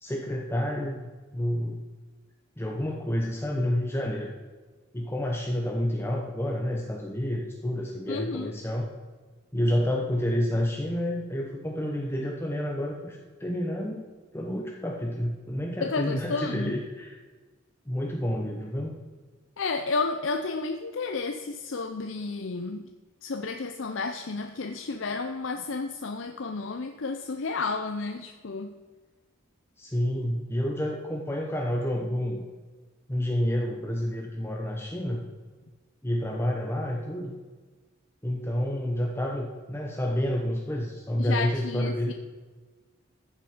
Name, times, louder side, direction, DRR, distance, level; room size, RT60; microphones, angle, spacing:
voice 1, 0.0-1.8 2.6-4.3 4.9-8.9 9.5-14.1 14.3-17.2 17.9-18.9 29.8-32.5 33.1-35.2 36.0-37.3 38.2-42.1, equal, 10° left, 0 dB, 1.0 m, -29 dB
voice 2, 8.1-8.5 15.8-16.8 19.6-22.8 23.2-28.7 41.2-42.1, left 4 dB, 70° left, 7 dB, 0.6 m, -31 dB
14.0 x 7.4 x 5.0 m, 1.4 s
head